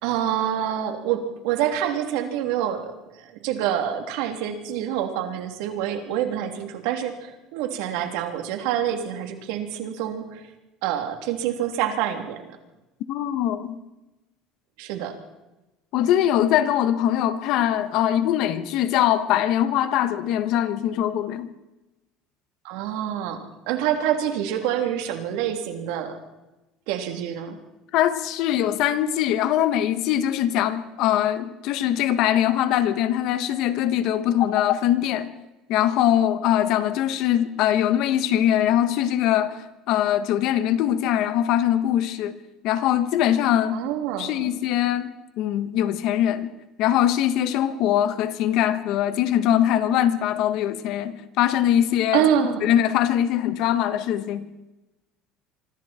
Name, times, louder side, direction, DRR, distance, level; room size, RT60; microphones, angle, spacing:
voice 1, 0.0-10.4 10.8-12.4 14.8-15.1 22.6-23.4 23.7-26.2 26.9-27.6 43.7-44.6 52.1-52.7, right 10 dB, 80° right, 3.2 m, -26 dB
voice 2, 13.1-13.8 15.9-21.5 27.9-35.3 35.7-42.3 42.6-43.8 44.2-45.1 45.4-46.5 46.8-54.5, left 11 dB, 60° left, 1.5 m, -22 dB
26.0 x 24.5 x 4.5 m
cardioid pair, 150°, 0 cm